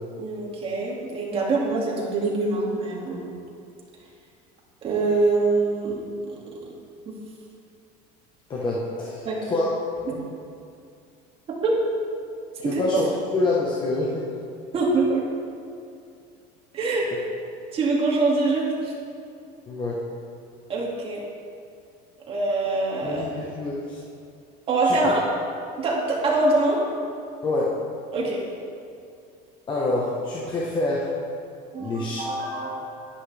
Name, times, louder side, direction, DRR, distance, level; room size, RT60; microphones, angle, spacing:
voice 1, 0.2-3.2 4.8-6.4 7.1-7.2 9.2-9.4 10.1-10.2 11.5-11.8 12.6-12.8 14.7-15.2 16.7-17.1 17.7-18.9 20.7-21.2 22.3-23.2 24.7-25.2 25.8-26.8 28.1-28.4 31.7-32.8, right 3 dB, 30° right, -4 dB, 2.3 m, -24 dB
voice 2, 8.5-9.7 12.6-14.3 17.1-17.2 19.7-20.0 23.0-24.0 24.8-25.1 27.4-27.7 29.7-31.1 31.8-32.3, left 2 dB, 25° left, -5 dB, 1.2 m, -26 dB
11.0 x 10.5 x 3.4 m, 2.4 s
cardioid pair, 150°, 19 cm